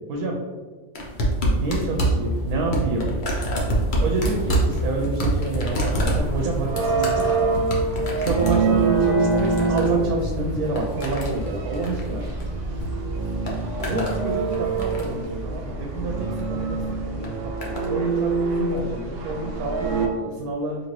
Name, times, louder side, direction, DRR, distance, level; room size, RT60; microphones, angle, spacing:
voice 1, 0.1-0.4 1.6-3.1 4.0-7.5 8.2-12.3 13.8-20.8, right 3 dB, 90° right, 0 dB, 1.1 m, -29 dB
sound 1, 0.9-12.9 13.2-14.2 14.5-15.2 16.2-16.5 17.2-17.9 18.8-18.9, right 1 dB, 45° left, 0.7 m, -26 dB
sound 2, 1.6-17.1, left 1 dB, 75° left, 1.0 m, -38 dB
sound 3, 5.9-20.1, right 3 dB, 65° right, 0.9 m, -25 dB
3.9 x 2.7 x 3.0 m, 1.4 s
omnidirectional pair, 1.5 m